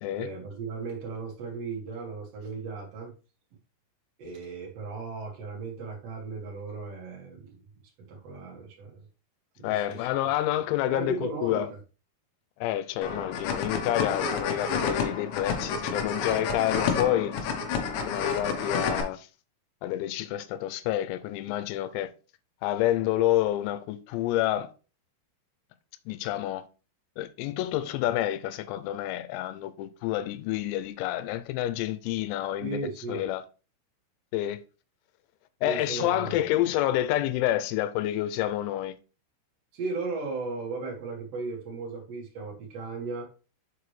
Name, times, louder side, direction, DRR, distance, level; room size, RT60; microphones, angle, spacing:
voice 1, 0.1-3.1 4.2-7.6 8.1-8.9 9.6-10.1 10.9-11.8 32.6-33.2 35.6-36.4 39.7-43.3, right 4 dB, 70° right, 1.4 m, -36 dB
voice 2, 9.6-11.7 12.6-17.5 18.1-19.3 19.8-22.1 22.6-24.7 26.1-26.7 27.2-32.8 33.1-33.4 34.3-34.6 35.6-39.0, left 13 dB, 90° left, 3.4 m, -28 dB
sound 1, 13.0-19.0, left 5 dB, 70° left, 3.0 m, -30 dB
7.3 x 4.8 x 3.2 m
omnidirectional pair, 6.0 m